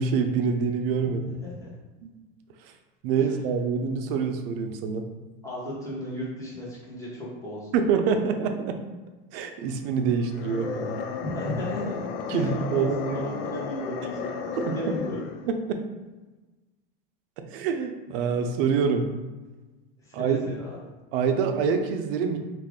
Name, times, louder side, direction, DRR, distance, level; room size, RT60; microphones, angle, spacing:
voice 1, 0.0-1.2 2.0-2.1 3.0-5.1 7.7-8.8 9.3-11.0 12.3-13.2 14.6-15.0 15.5-15.8 17.4-19.1 20.1-20.5 21.1-22.4, right 6 dB, 70° right, 6 dB, 0.6 m, -26 dB
voice 2, 1.0-1.7 5.4-7.7 11.2-15.2 20.0-20.7, equal, 10° left, -7 dB, 1.4 m, -35 dB
sound 1, 10.2-15.5, left 6 dB, 80° left, 0.5 m, -34 dB
3.2 x 2.5 x 3.6 m, 1.2 s
supercardioid pair, 120°, 29 cm